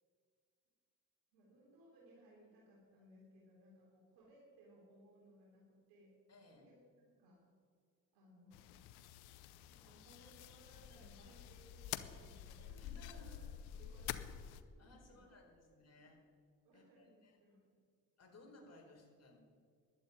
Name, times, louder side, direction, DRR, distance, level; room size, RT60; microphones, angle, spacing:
voice 1, 1.3-6.1 6.6-6.8 7.1-7.4 8.1-8.7 9.7-15.4 15.9-16.0 16.6-17.7, right 1 dB, 90° right, -4 dB, 3.6 m, -64 dB
voice 2, 6.3-6.7 12.8-13.5 14.8-16.2 16.7-17.4 18.2-19.4, left 1 dB, 40° left, 1 dB, 4.6 m, -61 dB
sound 1, 8.5-14.6, left 11 dB, 85° left, 0.8 m, -49 dB
11.5 x 9.3 x 9.8 m, 2.1 s
supercardioid pair, 55°, 37 cm